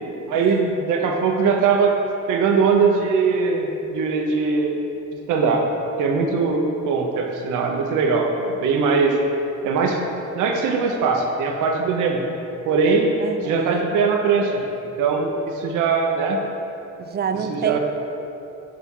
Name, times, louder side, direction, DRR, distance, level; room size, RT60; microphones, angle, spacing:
voice 1, 0.3-1.9 2.3-4.8 5.3-5.6 6.0-9.1 9.6-10.0 10.3-12.2 12.6-13.1 13.4-14.6 15.0-16.4 17.5-17.8, right 5 dB, 85° right, 2 dB, 0.8 m, -21 dB
voice 2, 13.2-14.0 17.0-17.8, right 7 dB, 35° right, 8 dB, 0.4 m, -27 dB
6.6 x 3.5 x 5.4 m, 2.9 s
cardioid pair, 90°, 30 cm